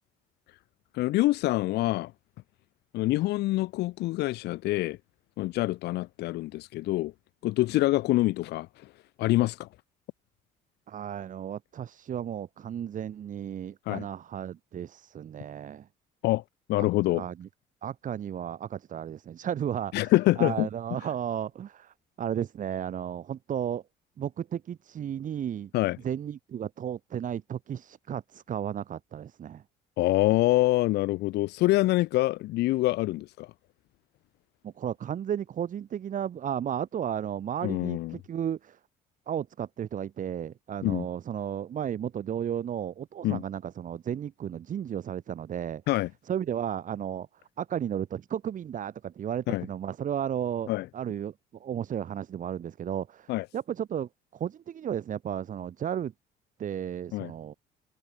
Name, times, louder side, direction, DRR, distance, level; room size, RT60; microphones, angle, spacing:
voice 1, 0.9-2.1 2.9-5.0 5.4-7.1 7.4-8.9 9.2-9.7 13.9-14.1 16.2-16.4 16.7-17.2 19.9-20.7 25.7-26.0 30.0-33.5 37.6-38.1 40.8-41.1 43.2-43.4 45.9-46.1 49.5-49.7 50.7-50.8 53.3-53.4 57.1-57.3, left 18 dB, 85° left, 2.8 m, -25 dB
voice 2, 10.9-15.9 16.8-16.9 17.1-17.5 17.8-23.8 24.2-25.7 26.0-29.6 34.6-38.8 39.3-45.8 46.3-47.3 47.6-56.1 56.6-57.5, right 9 dB, 50° right, 4.0 m, -34 dB
cardioid pair, 110°, 17 cm